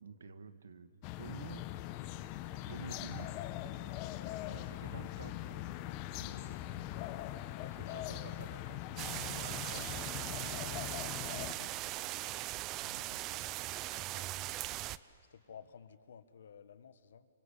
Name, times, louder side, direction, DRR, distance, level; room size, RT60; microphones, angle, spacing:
voice 1, 0.0-1.7 2.6-3.3 4.5-7.0 7.6-11.1 11.9-12.3 12.8-13.8, right 5 dB, 90° right, 12 dB, 1.6 m, -52 dB
sound 1, 1.0-11.5, left 14 dB, 35° left, 1.0 m, -41 dB
voice 2, 4.5-4.8 11.3-11.7 13.9-14.6 15.3-17.3, left 7 dB, 75° left, 13 dB, 1.4 m, -54 dB
sound 2, 8.3-13.9, equal, 5° right, 4.1 m, -67 dB
sound 3, 9.0-15.0, right 16 dB, 25° right, 0.5 m, -40 dB
26.5 x 24.0 x 8.4 m, 2.6 s
hypercardioid pair, 150°, 0 cm